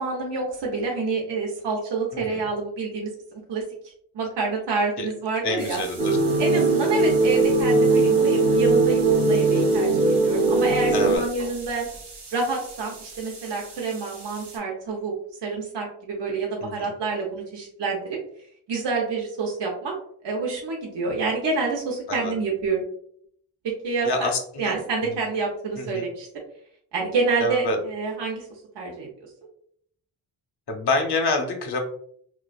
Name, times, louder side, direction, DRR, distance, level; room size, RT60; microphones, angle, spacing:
voice 1, 0.0-3.6 4.1-5.8 6.4-11.9 12.3-15.1 15.4-18.2 18.7-19.9 20.2-22.8 23.6-24.3 24.6-26.3 26.9-28.5 28.8-29.1, right 4 dB, 60° right, -1 dB, 0.7 m, -27 dB
voice 2, 2.1-2.5 5.0-5.1 5.4-6.2 10.9-11.2 16.6-16.9 22.1-22.3 24.0-24.7 25.0-25.2 25.8-26.1 27.4-27.8 30.7-31.8, left 3 dB, 55° left, 3 dB, 0.7 m, -27 dB
sound 1, 5.6-14.6, right 3 dB, 80° right, 0.9 m, -42 dB
sound 2, 6.0-11.2, right 3 dB, 15° right, 0.6 m, -20 dB
2.4 x 2.3 x 2.2 m, 0.65 s
cardioid pair, 55°, 49 cm